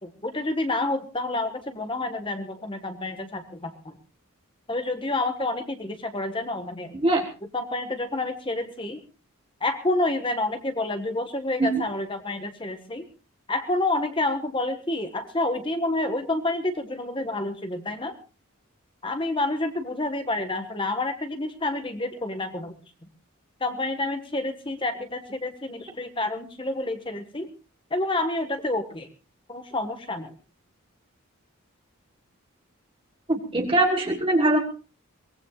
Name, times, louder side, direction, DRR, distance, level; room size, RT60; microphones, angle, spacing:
voice 1, 0.0-3.9 4.7-6.9 7.5-9.0 9.6-13.0 13.5-18.1 19.0-22.7 23.6-27.5 27.9-29.1 29.5-30.3, left 2 dB, 20° left, 7 dB, 1.4 m, -28 dB
voice 2, 33.3-34.6, right 2 dB, 25° right, 3 dB, 1.5 m, -21 dB
23.0 x 19.0 x 2.4 m, 0.32 s
head